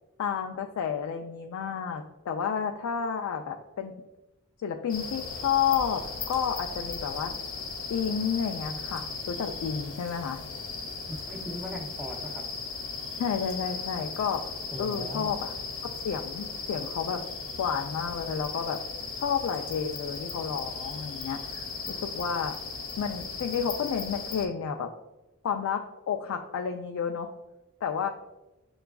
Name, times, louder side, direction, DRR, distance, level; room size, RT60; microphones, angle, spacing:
voice 1, 0.2-3.9 4.6-7.3 7.9-10.4 13.2-14.4 14.8-15.5 15.8-17.2 17.6-18.8 19.1-22.5 23.0-24.9 25.4-27.3 27.8-28.1, left 7 dB, 90° left, 4 dB, 0.3 m, -31 dB
sound 1, 4.9-24.5, left 4 dB, 65° left, 0.8 m, -37 dB
voice 2, 11.1-12.4 14.7-15.3, equal, 5° right, 1 dB, 0.5 m, -38 dB
6.6 x 2.3 x 2.2 m, 0.99 s
head